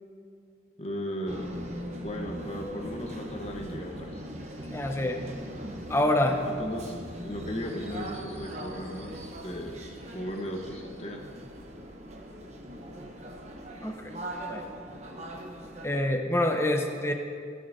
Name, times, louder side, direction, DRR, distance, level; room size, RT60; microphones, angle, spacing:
voice 1, 0.8-1.5 1.9-4.2 6.5-6.9 7.2-9.9 10.1-11.2, equal, 35° left, 1 dB, 1.3 m, -36 dB
sound 1, 1.3-16.0, right 1 dB, 35° right, 1.1 m, -40 dB
voice 2, 4.7-5.2 5.9-6.4 13.8-14.1 14.5-14.6 15.8-17.1, left 1 dB, 15° left, 4 dB, 0.8 m, -26 dB
16.5 x 12.5 x 2.8 m, 2.2 s
head